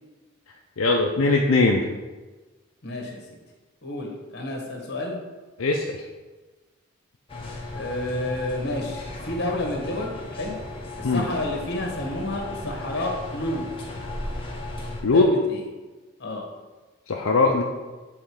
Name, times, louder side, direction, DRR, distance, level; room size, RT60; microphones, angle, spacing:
voice 1, 0.8-1.8 5.6-6.0 11.0-11.2 15.0-15.3 17.1-17.6, left 3 dB, 75° left, 0 dB, 0.5 m, -20 dB
voice 2, 2.8-3.2 3.8-5.2 7.7-10.5 11.0-13.7 15.1-15.6 16.2-16.4, left 1 dB, 50° left, 1 dB, 1.4 m, -30 dB
sound 1, 7.3-15.0, left 2 dB, 25° left, 1.1 m, -36 dB
7.7 x 3.8 x 4.7 m, 1.3 s
head